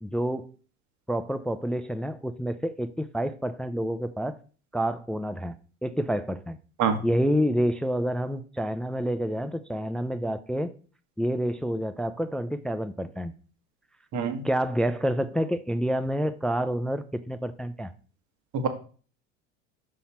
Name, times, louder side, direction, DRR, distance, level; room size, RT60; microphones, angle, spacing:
voice 1, 0.0-0.5 1.1-4.4 4.7-5.6 5.8-6.6 7.0-10.7 11.2-13.3 14.4-17.9, equal, ahead, 11 dB, 0.3 m, -28 dB
voice 2, 14.1-14.4 18.5-18.7, right 6 dB, 50° right, 7 dB, 1.6 m, -25 dB
5.7 x 5.5 x 4.3 m, 0.39 s
hypercardioid pair, 85°, 36 cm